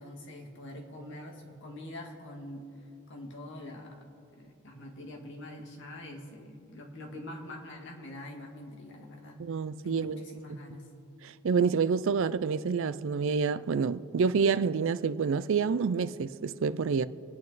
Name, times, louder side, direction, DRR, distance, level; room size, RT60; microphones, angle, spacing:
voice 1, 0.0-2.6 3.1-4.0 4.4-9.4 9.8-10.9, left 1 dB, 55° left, 1.9 m, -44 dB
voice 2, 9.4-10.3 11.2-17.1, right 5 dB, 60° right, 0.4 m, -28 dB
25.5 x 8.6 x 4.0 m
head